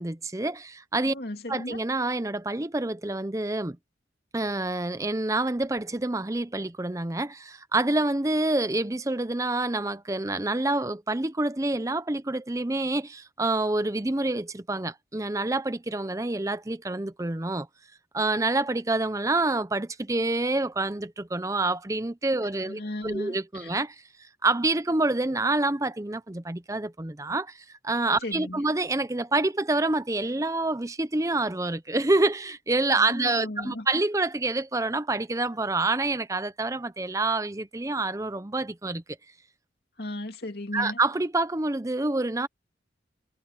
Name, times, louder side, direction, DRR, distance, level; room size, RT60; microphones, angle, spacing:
voice 1, 0.0-1.1 1.5-3.8 4.3-17.7 18.1-23.9 24.4-27.5 27.8-39.0 40.7-42.5, right 2 dB, 15° right, 0.7 m, -27 dB
voice 2, 1.0-1.8 22.6-23.7 28.2-28.6 33.0-33.9 40.0-41.0, left 1 dB, 55° left, 2.8 m, -36 dB
head